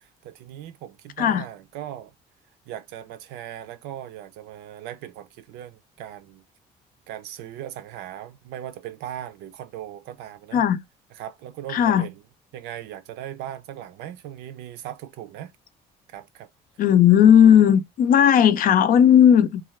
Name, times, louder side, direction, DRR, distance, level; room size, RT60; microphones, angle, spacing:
voice 1, 0.3-2.1 2.7-6.4 7.1-10.6 11.2-12.2 12.5-15.5 16.1-16.5, right 11 dB, 90° right, 0.5 m, -38 dB
voice 2, 11.7-12.1 16.8-19.6, left 9 dB, 55° left, 0.5 m, -16 dB
2.5 x 2.4 x 3.0 m
cardioid pair, 110°, 17 cm